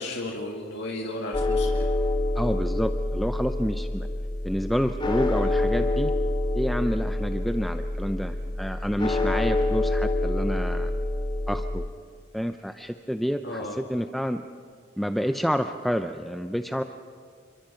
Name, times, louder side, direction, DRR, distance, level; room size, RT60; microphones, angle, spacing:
voice 1, 0.0-1.7 13.4-13.8, left 1 dB, 65° left, 0 dB, 2.5 m, -33 dB
sound 1, 1.3-11.9, left 2 dB, 25° left, 2.3 m, -27 dB
voice 2, 2.4-4.1 4.4-6.1 6.5-10.9 11.5-11.8 12.3-14.4 15.0-16.8, equal, ahead, 7 dB, 0.6 m, -29 dB
28.0 x 25.0 x 5.9 m, 2.1 s
head